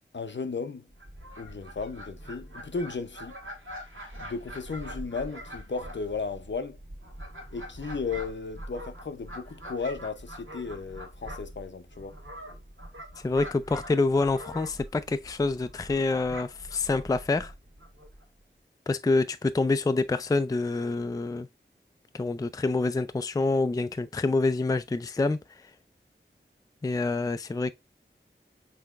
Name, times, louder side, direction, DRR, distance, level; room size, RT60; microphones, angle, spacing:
voice 1, 0.1-0.9 1.4-3.3 4.2-6.8 7.5-12.2, left 4 dB, 65° left, 0.6 m, -35 dB
Fowl, 0.9-18.2, equal, 80° right, 1.8 m, -43 dB
voice 2, 13.2-17.5 18.9-21.5 22.1-25.4 26.8-27.7, left 3 dB, 20° left, 0.3 m, -26 dB
5.6 x 3.4 x 2.3 m
wide cardioid pair, 45°, 20 cm